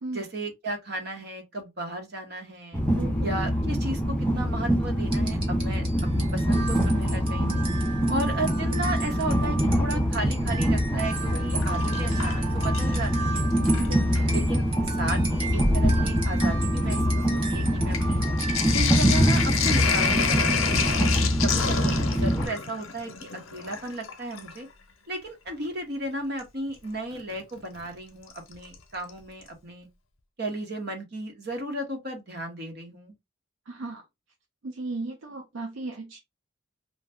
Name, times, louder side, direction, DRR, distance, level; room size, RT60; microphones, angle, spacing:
voice 1, 0.1-2.8 3.2-5.8 6.1-7.7 8.1-13.5 14.3-14.6 15.0-18.2 18.7-20.5 21.4-24.7 25.1-29.9 30.4-33.1, right 1 dB, 50° right, 1.0 m, -34 dB
Train, 2.7-22.5, equal, 5° left, 0.7 m, -24 dB
voice 2, 2.9-3.4 8.1-8.4 13.8-14.3 33.7-34.0 34.6-36.2, right 3 dB, 70° right, 0.5 m, -35 dB
sound 1, 5.1-19.5, right 2 dB, 25° right, 0.8 m, -35 dB
Sink (filling or washing), 11.1-13.2 13.5-14.3 15.1-15.2 15.5-24.6 26.4-26.5 28.3-28.7 29.1-29.2 29.4-29.5, left 6 dB, 85° left, 0.7 m, -30 dB
2.6 x 2.2 x 3.4 m
head